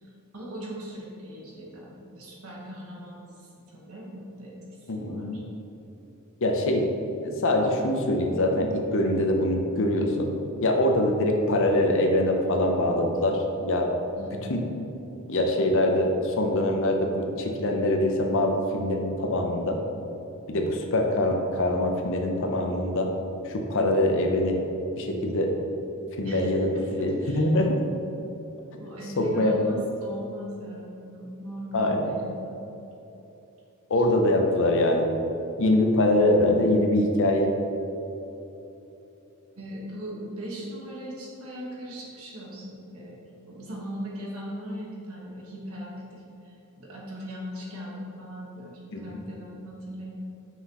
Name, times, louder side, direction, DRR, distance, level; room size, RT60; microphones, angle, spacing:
voice 1, 0.0-4.5 4.8-5.4 14.1-14.3 26.2-27.5 28.8-32.6 39.5-43.2 43.4-50.2, equal, 70° right, -4 dB, 1.4 m, -39 dB
voice 2, 4.9-5.4 6.4-6.8 7.2-10.3 10.6-13.9 14.5-14.6 15.3-19.8 20.5-23.1 23.4-24.6 24.9-25.5 26.2-27.8 29.2-29.5 31.7-32.1 33.9-35.1 35.6-37.5 48.9-49.2, left 1 dB, 60° left, 3 dB, 0.7 m, -24 dB
6.0 x 5.7 x 3.0 m, 3.0 s
head